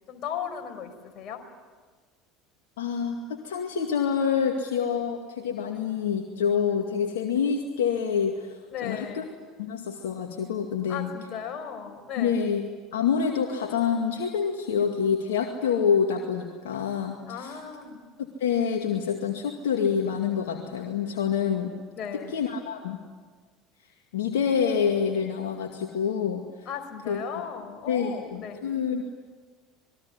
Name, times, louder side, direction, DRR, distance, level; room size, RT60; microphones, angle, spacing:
voice 1, 0.1-1.4 8.7-9.2 10.9-12.4 17.3-18.0 21.9-22.4 26.6-28.6, left 8 dB, 45° left, 4 dB, 5.0 m, -36 dB
voice 2, 2.8-9.2 9.6-11.1 12.2-12.7 12.9-17.6 18.2-21.7 22.3-23.0 24.1-26.4 27.1-27.2 27.9-29.0, left 7 dB, 75° left, 3 dB, 2.2 m, -27 dB
27.0 x 21.5 x 9.8 m, 1.5 s
figure-of-eight pair, 70°, 0 cm